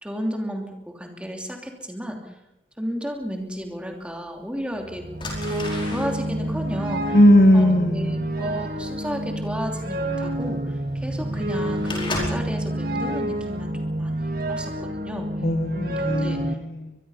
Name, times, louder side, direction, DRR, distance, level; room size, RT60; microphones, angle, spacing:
voice 1, 0.0-2.3 2.8-5.1 5.4-7.2 7.5-15.3 15.7-16.6, equal, 5° right, 2 dB, 2.9 m, -33 dB
sound 1, 3.7-3.8 4.5-4.7 5.1-12.6 13.1-13.5 13.9-14.1, left 2 dB, 30° left, 4.8 m, -35 dB
sound 2, 4.8-16.5, right 1 dB, 55° right, 2.2 m, -28 dB
voice 2, 7.1-8.3 15.4-17.0, equal, 60° left, 7 dB, 1.4 m, -18 dB
24.0 x 21.5 x 5.7 m, 0.93 s
head